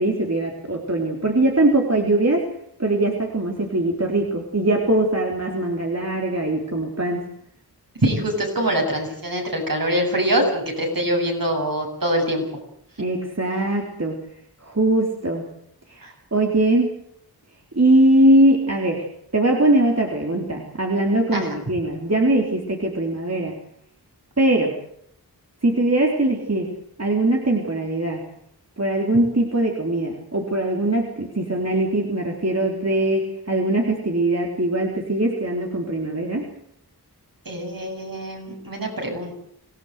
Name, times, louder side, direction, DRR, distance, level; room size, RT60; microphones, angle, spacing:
voice 1, 0.0-2.5 2.8-7.3 13.0-14.2 14.6-15.4 15.9-16.9 17.7-19.1 19.3-23.5 24.4-24.8 25.6-26.7 27.0-28.2 28.8-36.5, right 1 dB, 40° right, 1 dB, 3.5 m, -21 dB
voice 2, 8.0-12.4 21.3-21.5 37.4-39.3, right 1 dB, 60° right, 2 dB, 8.0 m, -24 dB
25.5 x 18.0 x 8.0 m, 0.72 s
wide cardioid pair, 50°, 39 cm